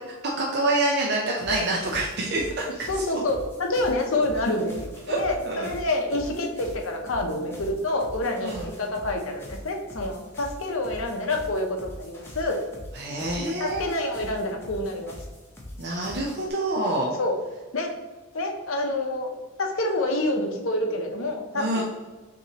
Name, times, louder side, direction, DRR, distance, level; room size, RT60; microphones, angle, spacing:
voice 1, 0.4-2.6 2.9-3.0 5.1-5.2 5.5-5.7 8.4-8.7 12.9-14.2 15.8-17.1 21.5-21.8, right 2 dB, 50° right, -2 dB, 0.6 m, -26 dB
sound 1, 1.4-16.5, left 1 dB, 10° left, 0.7 m, -42 dB
voice 2, 2.9-12.6 13.6-15.1 17.2-17.4 17.7-17.9 18.3-19.3 19.6-21.8, left 1 dB, 70° left, 3 dB, 0.7 m, -27 dB
6.0 x 2.9 x 2.9 m, 1.2 s
head